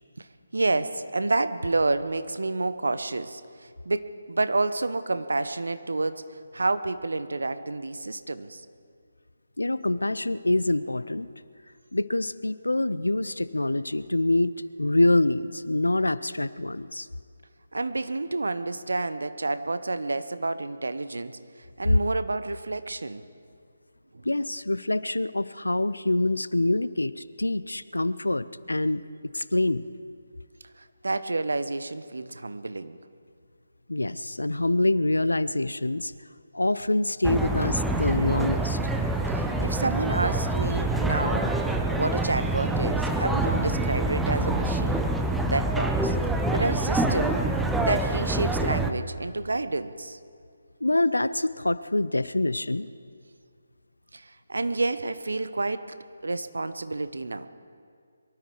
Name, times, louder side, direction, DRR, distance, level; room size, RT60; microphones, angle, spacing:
voice 1, 0.5-8.7 17.7-21.4 21.8-23.2 24.1-24.3 30.8-33.0 39.2-41.5 42.0-45.0 45.5-46.2 46.5-47.4 47.8-50.2 54.1-56.0 56.2-57.5, right 2 dB, 65° right, 12 dB, 0.9 m, -29 dB
voice 2, 9.6-11.3 11.9-14.5 14.8-17.1 24.2-29.0 29.3-29.8 33.9-36.1 36.5-38.8 50.8-52.9, left 2 dB, 75° left, 16 dB, 0.6 m, -25 dB
sound 1, 37.2-48.9, right 2 dB, 5° right, 0.6 m, -26 dB
23.5 x 13.0 x 4.7 m, 2.2 s
figure-of-eight pair, 150°, 0 cm